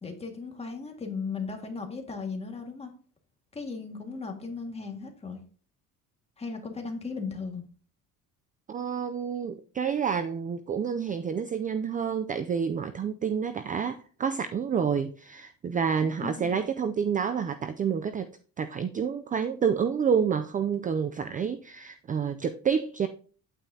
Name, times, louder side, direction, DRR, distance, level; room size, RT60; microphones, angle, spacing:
voice 1, 0.0-2.9 3.5-5.4 6.4-7.6 16.0-16.6, left 4 dB, 20° left, 2 dB, 1.9 m, -36 dB
voice 2, 8.7-18.3 18.6-23.1, right 7 dB, 25° right, 10 dB, 0.4 m, -29 dB
9.3 x 8.8 x 2.8 m, 0.41 s
cardioid pair, 150°, 35 cm